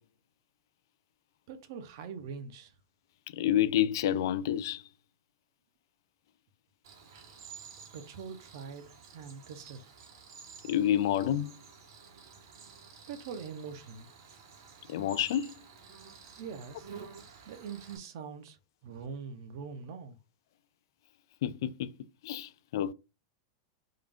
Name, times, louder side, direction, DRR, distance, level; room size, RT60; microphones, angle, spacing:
voice 1, 1.5-2.7 7.9-9.8 13.1-14.1 16.4-16.9 17.5-18.6 18.8-20.2, right 6 dB, 55° right, 0.7 m, -43 dB
voice 2, 3.3-4.8 10.7-11.5 14.9-15.5 21.4-21.9 22.2-22.9, left 11 dB, 65° left, 0.3 m, -28 dB
Cricket, 6.8-18.0, right 6 dB, 75° right, 1.2 m, -52 dB
3.7 x 2.4 x 3.4 m
supercardioid pair, 165°, 2 cm